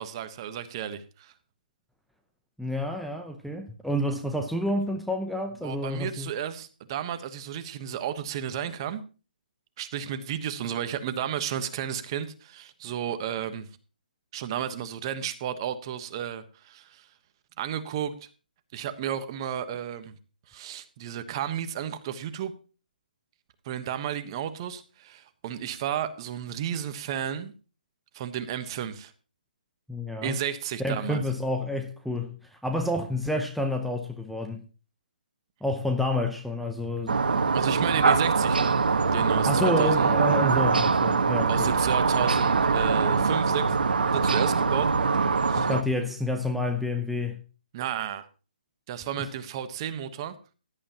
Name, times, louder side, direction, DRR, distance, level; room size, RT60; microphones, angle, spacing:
voice 1, 0.0-1.3 5.6-9.0 9.8-13.6 14.3-17.1 17.6-18.1 18.7-20.1 20.5-22.5 23.6-27.5 28.1-29.1 30.2-31.2 37.5-38.8 39.1-40.1 41.5-43.8 44.1-44.9 45.5-45.7 47.7-48.3 48.9-50.4, right 9 dB, 30° right, 1.2 m, -32 dB
voice 2, 2.6-6.3 29.9-30.4 30.8-34.6 35.6-37.4 37.9-38.0 39.4-41.7 45.6-47.4, left 1 dB, ahead, 0.7 m, -29 dB
sound 1, 37.1-45.8, right 4 dB, 70° right, 1.4 m, -23 dB
16.5 x 11.5 x 2.9 m
hypercardioid pair, 155°, 5 cm